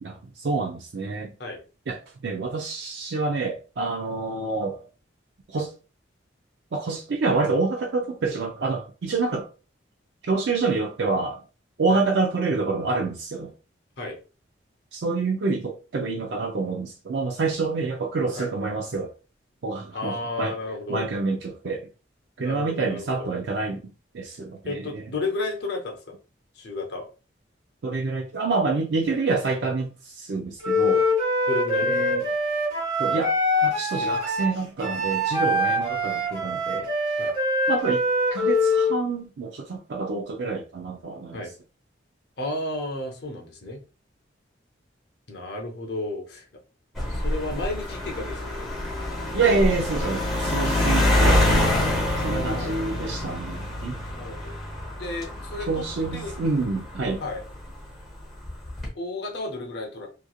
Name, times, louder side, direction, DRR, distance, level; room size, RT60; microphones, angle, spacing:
voice 1, 0.0-1.3 1.9-2.0 2.2-4.8 5.5-5.7 6.7-9.5 10.3-11.4 11.8-13.5 14.9-19.1 19.6-20.5 20.9-21.9 22.4-23.8 24.1-25.0 27.8-31.1 31.8-32.2 33.0-33.3 33.6-36.9 37.7-38.0 38.3-41.4 49.3-51.8 52.2-54.0 55.7-57.2, right 3 dB, 60° right, 0.4 m, -27 dB
voice 2, 19.9-21.1 22.4-23.3 24.6-26.2 26.5-27.1 31.5-32.0 35.7-35.8 37.2-37.3 41.3-41.5 42.4-43.8 45.3-46.4 47.1-48.6 52.2-53.1 54.1-54.6 55.0-55.8 56.1-56.4 57.2-57.4 58.9-60.1, left 2 dB, 55° left, 0.7 m, -32 dB
Wind instrument woodwind instrument, 30.6-39.0, left 1 dB, 20° right, 1.1 m, -24 dB
sound 1, 47.0-57.7 58.5-58.9, left 1 dB, ahead, 1.0 m, -26 dB
3.0 x 2.4 x 2.3 m
head